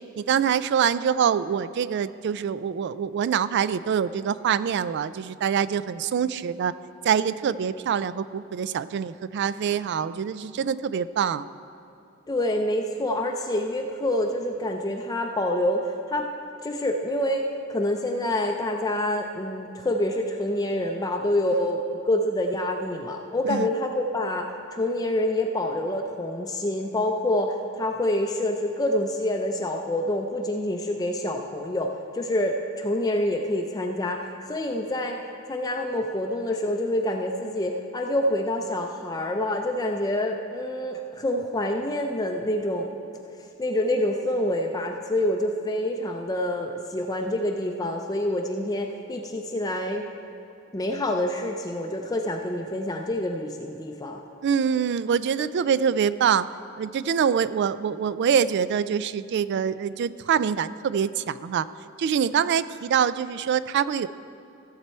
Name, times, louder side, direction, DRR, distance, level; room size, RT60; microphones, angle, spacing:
voice 1, 0.0-6.7 7.0-11.5 23.5-23.7 54.4-56.5 56.8-61.7 62.0-64.1, right 7 dB, 55° right, 16 dB, 0.3 m, -25 dB
voice 2, 12.3-16.3 16.6-35.2 35.5-42.9 43.6-50.0 50.7-54.2, left 1 dB, 20° left, 2 dB, 0.5 m, -27 dB
15.0 x 7.4 x 4.4 m, 2.7 s
head